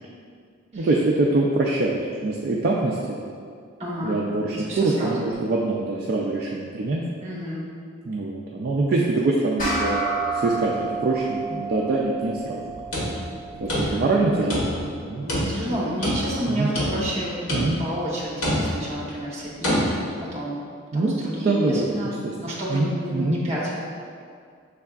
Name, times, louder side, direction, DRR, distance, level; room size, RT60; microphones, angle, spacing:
voice 1, 0.7-3.2 4.0-7.0 8.1-10.7 11.0-12.6 13.6-15.3 16.5-16.7 17.5-17.8 20.9-22.3 22.7-23.4, right 2 dB, 45° right, -3 dB, 0.3 m, -24 dB
voice 2, 3.8-4.2 4.5-5.3 7.2-7.7 13.7-14.0 15.2-19.9 20.2-20.6 20.9-23.8, equal, 30° right, -5 dB, 0.9 m, -30 dB
sound 1, 9.6-14.4, right 3 dB, 40° left, 1.2 m, -30 dB
sound 2, 12.7-14.2 14.5-15.0 15.3-16.4 16.8-17.2 17.5-18.0 18.4-18.9 19.6-19.9, equal, 85° left, 1.4 m, -26 dB
6.4 x 3.5 x 2.3 m, 2.2 s
head